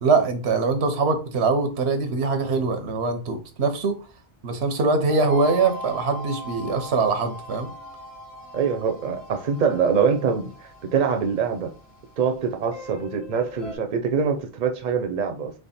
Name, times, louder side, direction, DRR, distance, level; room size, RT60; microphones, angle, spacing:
voice 1, 0.0-4.0 4.4-7.7, right 4 dB, 85° right, 1.1 m, -23 dB
sound 1, 5.1-13.8, equal, 80° left, 1.3 m, -40 dB
voice 2, 8.5-10.5 10.8-11.7 12.2-15.5, right 6 dB, 50° right, 0.7 m, -24 dB
3.5 x 3.2 x 4.2 m
omnidirectional pair, 1.1 m